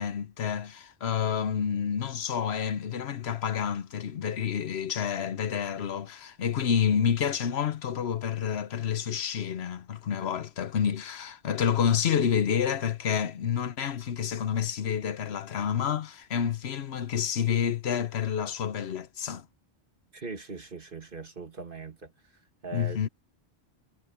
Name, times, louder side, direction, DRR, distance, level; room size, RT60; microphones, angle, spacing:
voice 1, 0.0-19.4 22.7-23.1, left 8 dB, 75° left, 1.1 m, -29 dB
voice 2, 20.1-22.1 22.6-23.1, right 4 dB, 55° right, 2.3 m, -40 dB
omnidirectional pair, 1.1 m